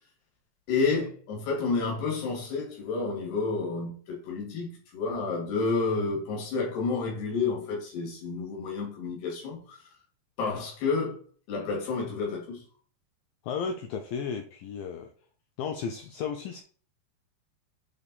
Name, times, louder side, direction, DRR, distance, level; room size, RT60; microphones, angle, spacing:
voice 1, 0.7-9.8 10.4-11.2 11.5-12.6, left 4 dB, 75° left, 4.2 m, -30 dB
voice 2, 13.4-15.1 15.6-16.6, left 6 dB, 90° left, 2.0 m, -34 dB
8.0 x 3.6 x 4.1 m
omnidirectional pair, 4.8 m